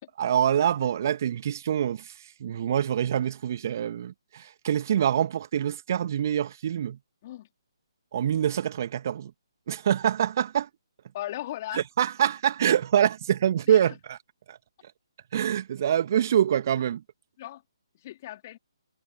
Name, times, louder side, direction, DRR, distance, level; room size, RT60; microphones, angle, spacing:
voice 1, 0.2-2.1 2.4-7.0 8.1-9.3 9.7-10.7 11.7-14.2 14.5-14.6 15.3-17.0, right 9 dB, 40° right, 2.0 m, -25 dB
voice 2, 11.1-11.8 13.7-14.0 17.4-17.6 17.9-18.6, left 14 dB, 35° left, 3.3 m, -37 dB
figure-of-eight pair, 140°, 3 cm